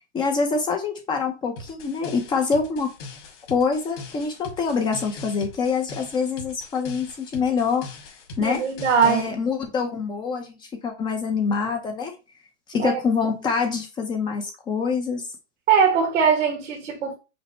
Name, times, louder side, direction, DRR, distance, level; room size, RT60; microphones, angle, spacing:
voice 1, 0.1-2.9 3.5-7.9 8.4-8.6 9.0-12.1 12.7-15.3, left 5 dB, 15° left, 0.5 m, -25 dB
sound 1, 1.6-9.3, left 3 dB, 55° left, 2.0 m, -41 dB
voice 2, 8.4-9.4 12.8-13.0 15.7-17.1, right 6 dB, 85° right, 1.5 m, -21 dB
5.2 x 2.1 x 4.3 m
hypercardioid pair, 150°, 36 cm